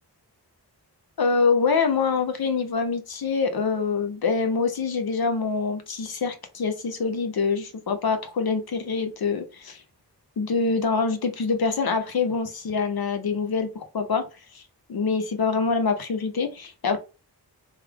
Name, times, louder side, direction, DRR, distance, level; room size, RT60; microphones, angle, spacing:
voice 1, 1.2-9.8 10.4-14.3 14.5-14.6 14.9-17.0, left 4 dB, 65° left, 0.7 m, -25 dB
3.2 x 2.3 x 3.4 m
cardioid pair, 55°, 40 cm